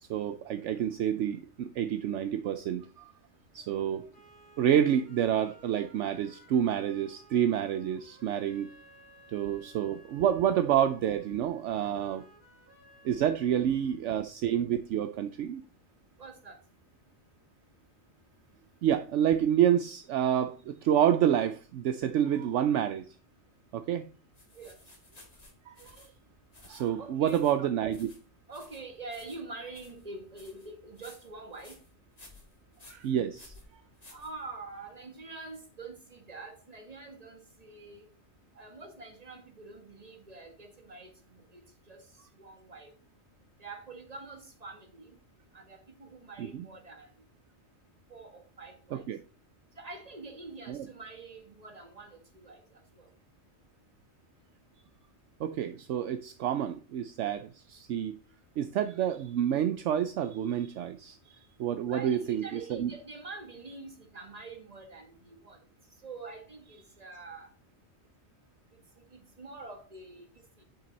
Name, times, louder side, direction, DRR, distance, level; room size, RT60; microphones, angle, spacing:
voice 1, 0.0-3.1 3.5-4.1 4.6-8.7 9.3-12.2 13.0-15.6 18.8-23.1 23.7-24.1 25.7-25.9 26.7-28.1 32.9-33.5 46.4-46.6 48.9-49.2 50.7-50.9 55.4-58.2 58.6-61.2 61.6-62.9, right 10 dB, 70° right, 0.9 m, -28 dB
sound 1, 3.5-14.5, right 1 dB, 50° left, 3.8 m, -59 dB
voice 2, 16.2-16.6 24.5-24.8 27.0-27.7 28.5-31.8 34.1-38.0 38.6-42.1 42.4-42.9 43.6-45.2 45.5-47.1 48.1-49.0 49.8-53.1 61.9-65.7 66.0-67.5 69.1-70.3 70.6-70.7, right 3 dB, 30° right, 1.8 m, -46 dB
sound 2, 24.3-34.8, left 2 dB, 30° left, 2.1 m, -56 dB
8.7 x 6.0 x 4.0 m
omnidirectional pair, 1.3 m